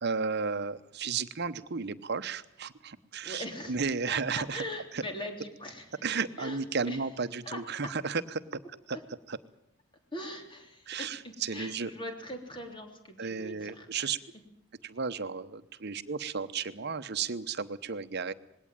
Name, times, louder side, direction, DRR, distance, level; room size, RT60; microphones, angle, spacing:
voice 1, 0.0-4.6 4.9-5.0 6.0-8.6 8.9-9.0 9.3-9.4 10.9-11.9 13.2-14.2 14.8-18.3, right 5 dB, 55° right, 12 dB, 1.0 m, -33 dB
voice 2, 3.2-5.9 6.2-7.0 7.4-7.9 8.9-9.0 10.1-14.1, left 1 dB, 25° left, 4 dB, 3.3 m, -41 dB
20.5 x 17.0 x 9.0 m, 0.83 s
head